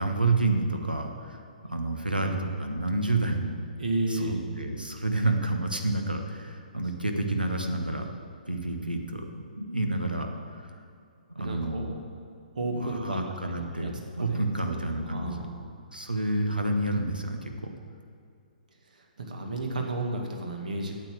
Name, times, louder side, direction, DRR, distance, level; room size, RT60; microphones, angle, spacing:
voice 1, 0.0-3.6 4.1-8.0 8.5-10.3 10.6-10.8 11.3-11.9 12.7-15.4 15.9-17.7, right 2 dB, 90° right, 4 dB, 1.3 m, -29 dB
voice 2, 3.8-4.4 11.4-11.9 12.6-13.9 14.2-15.8 18.8-21.0, right 2 dB, 65° right, 2 dB, 1.9 m, -33 dB
8.9 x 8.1 x 7.6 m, 2.4 s
figure-of-eight pair, 125°, 5 cm